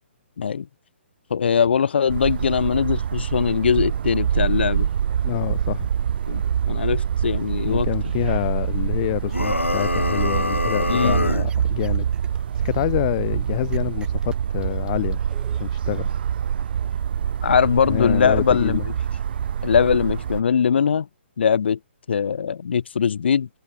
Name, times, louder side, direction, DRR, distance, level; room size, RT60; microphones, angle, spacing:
voice 1, 1.3-4.9 6.3-7.9 10.9-11.3 17.4-18.8 19.6-21.1 21.4-21.8 22.1-23.5, left 7 dB, 60° left, 2.6 m, -21 dB
sound 1, 2.1-20.4, right 9 dB, 55° right, 0.4 m, -25 dB
voice 2, 5.2-5.9 7.6-12.1 12.6-15.2 15.6-16.1 17.9-18.8, left 17 dB, 35° left, 0.9 m, -27 dB
sound 2, 9.3-11.5, left 2 dB, 90° left, 3.0 m, -25 dB
sound 3, 9.8-10.9 11.3-12.8 13.7-16.1, right 8 dB, 15° right, 5.6 m, -51 dB
figure-of-eight pair, 130°, 7 cm